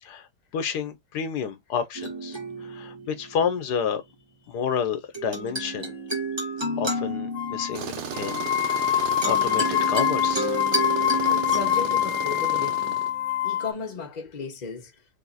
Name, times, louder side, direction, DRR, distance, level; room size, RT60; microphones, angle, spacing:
voice 1, 0.5-4.0 4.5-5.9 6.8-10.5, left 7 dB, 85° left, 1.4 m, -30 dB
sound 1, 2.0-3.7 5.1-13.6, right 2 dB, 20° right, 1.3 m, -32 dB
sound 2, 7.4-7.8 8.1-13.7, left 12 dB, 65° left, 1.1 m, -25 dB
Tools, 7.7-13.1, right 8 dB, 60° right, 0.7 m, -35 dB
voice 2, 11.2-13.0 13.4-15.0, left 4 dB, 30° left, 1.0 m, -35 dB
3.7 x 2.8 x 4.0 m
omnidirectional pair, 1.7 m